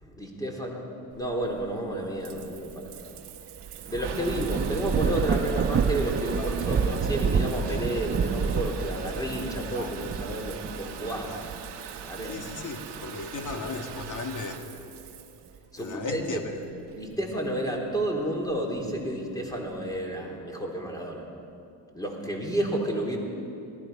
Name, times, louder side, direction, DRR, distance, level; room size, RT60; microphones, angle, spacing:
voice 1, 0.0-0.9 1.1-3.1 3.9-11.4 12.0-12.3 15.7-16.4 16.9-21.3 21.9-23.2, right 1 dB, 10° left, -1 dB, 3.5 m, -31 dB
Water tap faucet / Bathtub (filling or washing) / Trickle dribble, 1.1-20.0, right 8 dB, 60° right, 1.4 m, -42 dB
Thunder / Rain, 3.6-12.5 13.1-14.4, right 6 dB, 25° right, 0.5 m, -29 dB
voice 2, 12.3-14.6 15.8-16.4, left 4 dB, 40° left, 4 dB, 2.1 m, -36 dB
18.0 x 14.0 x 5.6 m, 2.6 s
supercardioid pair, 80°, 46 cm